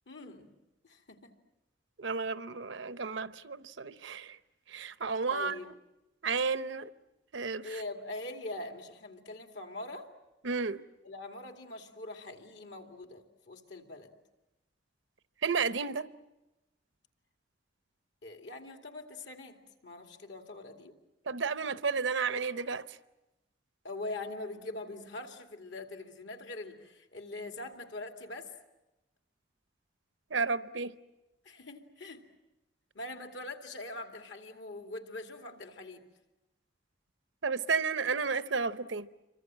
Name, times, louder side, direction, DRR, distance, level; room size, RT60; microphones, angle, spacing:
voice 1, 0.1-0.5 0.8-1.3 5.3-5.7 7.6-10.1 11.0-14.1 18.2-19.6 19.8-20.9 23.8-28.5 31.4-32.2 32.9-36.0, left 2 dB, 65° left, 2.5 m, -43 dB
voice 2, 2.0-4.4 4.7-5.5 6.2-6.9 7.3-7.7 10.4-10.8 15.4-16.1 21.3-22.9 30.3-30.9 37.4-39.1, right 5 dB, 75° right, 0.8 m, -32 dB
28.0 x 24.5 x 7.6 m
head